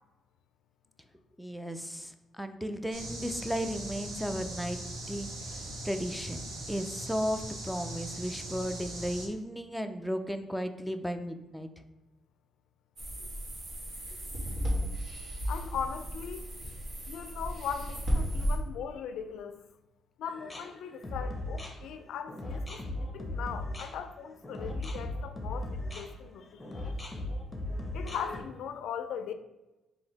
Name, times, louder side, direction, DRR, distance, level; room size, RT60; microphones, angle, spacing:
voice 1, 1.4-4.8 5.1-6.4 6.7-11.7, equal, ahead, 0.4 m, -35 dB
sound 1, 2.9-9.3, right 1 dB, 85° right, 1.0 m, -40 dB
sound 2, 13.0-18.6, equal, 50° right, 1.3 m, -34 dB
voice 2, 15.5-16.6 17.1-19.6 20.2-26.9 27.9-29.3, left 7 dB, 80° left, 0.3 m, -39 dB
sound 3, 20.3-28.4, left 1 dB, 15° left, 0.9 m, -37 dB
3.9 x 2.8 x 3.9 m
cardioid pair, 90°, 0 cm